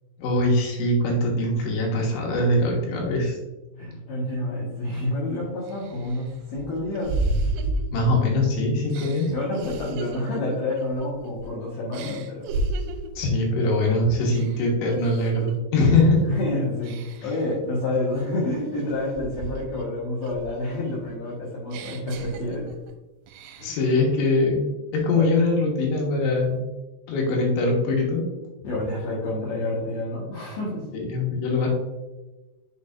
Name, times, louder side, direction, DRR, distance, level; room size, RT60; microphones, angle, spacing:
voice 1, 0.2-3.4 7.9-9.3 13.2-16.3 23.6-26.6 27.1-28.3 30.9-31.7, left 2 dB, 90° left, -1 dB, 3.8 m, -22 dB
voice 2, 3.8-7.2 9.3-12.4 16.3-17.0 17.2-22.7 23.6-23.7 25.1-25.3 28.6-30.8, left 1 dB, 65° left, -7 dB, 2.8 m, -28 dB
sound 1, 5.1-5.2 5.7-8.4 8.9-11.5 11.9-13.2 13.6-13.9 14.3-15.6 16.0-16.3 16.8-17.4 17.9-19.9 20.2-22.9 23.3-23.9, right 2 dB, 80° right, 2.7 m, -33 dB
6.8 x 6.6 x 2.5 m, 1.1 s
omnidirectional pair, 5.3 m